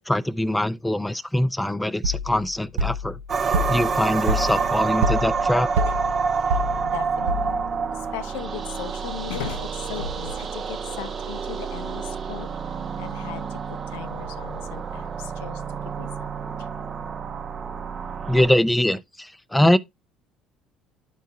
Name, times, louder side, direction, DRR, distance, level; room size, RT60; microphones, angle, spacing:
voice 1, 0.1-3.2 3.4-5.7 18.3-19.8, left 1 dB, 5° left, 0.4 m, -23 dB
sound 1, 2.0-7.8, equal, 75° right, 0.3 m, -28 dB
sound 2, 3.3-18.5, right 5 dB, 40° right, 0.7 m, -28 dB
voice 2, 6.3-7.6 7.9-12.6 13.0-17.0, left 9 dB, 70° left, 0.5 m, -38 dB
12.0 x 4.5 x 2.7 m
figure-of-eight pair, 55°, 0 cm